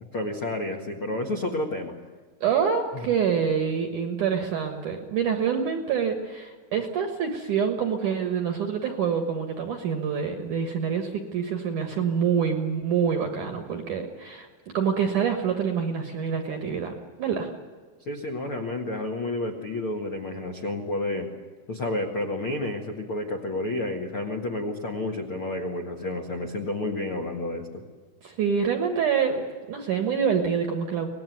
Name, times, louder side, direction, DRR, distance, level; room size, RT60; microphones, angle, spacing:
voice 1, 0.1-1.9 18.0-21.3 21.7-27.8, left 2 dB, 60° left, 3 dB, 1.4 m, -30 dB
voice 2, 2.4-14.5 14.7-17.5 28.2-31.1, right 7 dB, 60° right, 4 dB, 2.2 m, -26 dB
25.0 x 19.0 x 9.3 m, 1.4 s
omnidirectional pair, 5.4 m